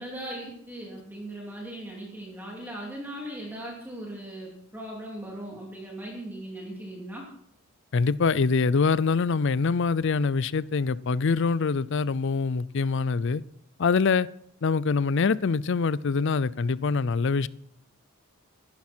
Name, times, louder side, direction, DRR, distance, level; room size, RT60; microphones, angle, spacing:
voice 1, 0.0-7.2, right 1 dB, 10° right, -4 dB, 3.1 m, -38 dB
voice 2, 7.9-13.4 13.8-14.3 14.6-17.5, left 4 dB, 55° left, 19 dB, 0.5 m, -24 dB
17.0 x 12.0 x 4.4 m, 0.69 s
head